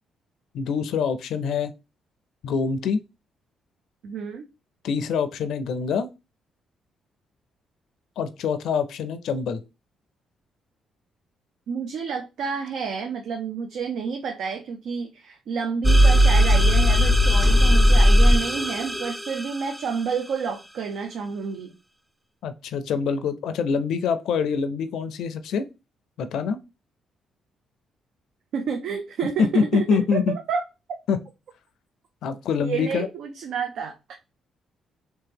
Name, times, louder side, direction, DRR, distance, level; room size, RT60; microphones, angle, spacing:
voice 1, 0.5-1.7 2.4-3.0 4.8-6.1 8.2-9.6 22.4-25.7 26.2-26.6 29.5-30.4 31.1-31.2 32.2-33.1, left 6 dB, 75° left, 0.4 m, -25 dB
voice 2, 4.0-4.5 11.7-21.7 28.5-30.6 32.6-34.2, right 6 dB, 75° right, 0.5 m, -29 dB
sound 1, 15.8-19.4, equal, 10° right, 0.3 m, -17 dB
3.1 x 2.8 x 3.4 m
cardioid pair, 90°, 0 cm